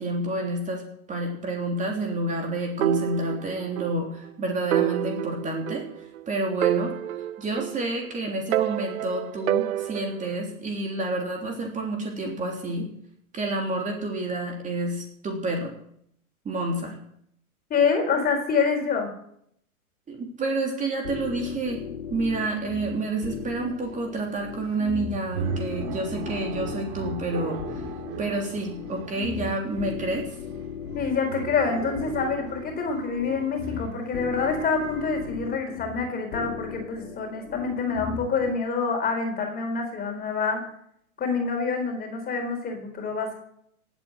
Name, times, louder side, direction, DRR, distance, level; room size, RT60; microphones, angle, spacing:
voice 1, 0.0-5.8 6.3-6.9 7.4-12.9 13.3-15.7 16.4-17.0 20.1-21.8 22.1-27.6 28.2-30.2, right 2 dB, 15° right, 1 dB, 3.4 m, -29 dB
sound 1, 2.8-4.0 4.3-4.4 4.7-6.2 6.6-8.1 8.5-10.4, right 13 dB, 65° right, 0.9 m, -28 dB
voice 2, 17.7-19.1 30.9-40.6 41.2-43.3, left 5 dB, 20° left, 4 dB, 4.1 m, -26 dB
sound 2, 21.0-38.5, left 7 dB, 60° left, 3.5 m, -37 dB
sound 3, 22.6-35.3, right 6 dB, 40° right, 2.7 m, -38 dB
18.0 x 8.8 x 7.9 m, 0.69 s
hypercardioid pair, 115°, 43 cm